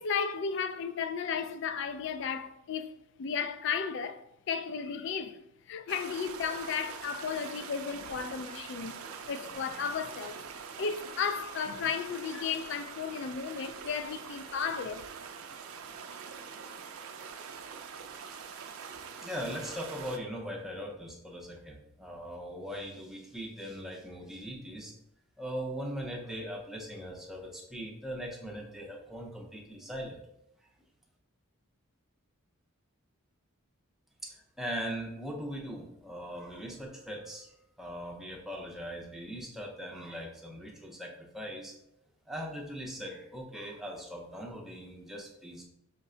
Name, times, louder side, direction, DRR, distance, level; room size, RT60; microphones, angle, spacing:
voice 1, 0.0-2.9 3.2-5.4 5.7-9.0 9.3-10.4 10.8-15.0, left 6 dB, 55° left, 0.3 m, -34 dB
sound 1, 5.9-20.2, right 6 dB, 75° right, 0.4 m, -44 dB
voice 2, 18.0-18.7 19.2-24.9 25.4-30.2 34.2-37.5 37.8-41.7 42.3-45.7, equal, ahead, 0.5 m, -40 dB
5.5 x 2.2 x 3.7 m
head